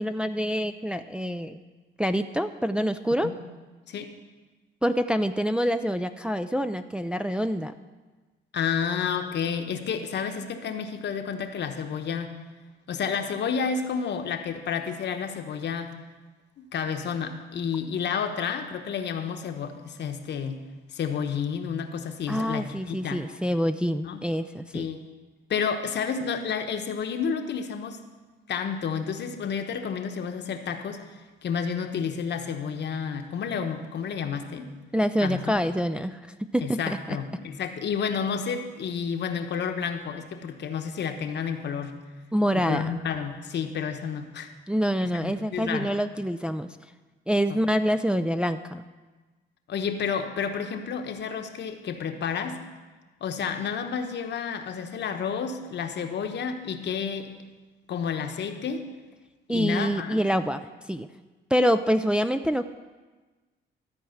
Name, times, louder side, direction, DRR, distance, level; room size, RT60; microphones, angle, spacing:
voice 1, 0.0-1.6 2.0-3.3 4.8-7.7 22.3-24.9 34.9-37.2 42.3-42.9 44.7-46.8 47.3-48.8 59.5-61.1 61.5-62.7, equal, 5° right, 8 dB, 0.4 m, -26 dB
voice 2, 8.5-12.3 12.9-15.9 16.7-20.6 20.9-23.3 24.0-24.2 24.7-25.0 25.5-28.0 28.5-34.7 35.2-35.6 36.6-42.0 42.5-44.5 45.2-45.9 47.5-47.6 49.7-52.6 53.2-57.3 57.9-58.8 59.5-60.2, left 6 dB, 60° left, 6 dB, 1.1 m, -30 dB
13.5 x 4.7 x 7.9 m, 1.3 s
cardioid pair, 90°, 20 cm